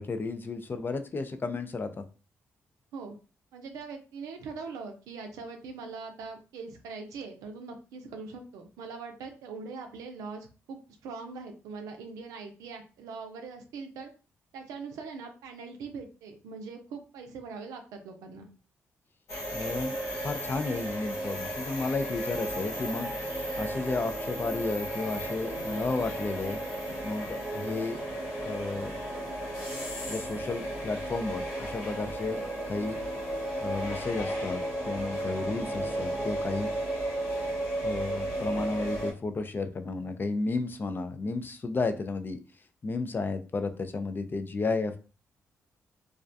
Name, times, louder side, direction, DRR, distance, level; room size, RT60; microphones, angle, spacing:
voice 1, 0.0-2.0 19.5-23.2 23.6-26.6 27.0-28.0 28.4-29.0 30.1-33.0 33.6-36.7 37.8-42.4 42.8-45.0, left 3 dB, 35° left, 9 dB, 0.4 m, -33 dB
voice 2, 3.5-14.1 14.5-18.5, right 4 dB, 90° right, 5 dB, 0.4 m, -42 dB
sound 1, 19.3-39.1, right 1 dB, 85° left, 1.0 m, -35 dB
sound 2, 22.3-37.6, right 1 dB, 20° right, 0.7 m, -41 dB
2.3 x 2.2 x 2.5 m, 0.35 s
supercardioid pair, 65°, 6 cm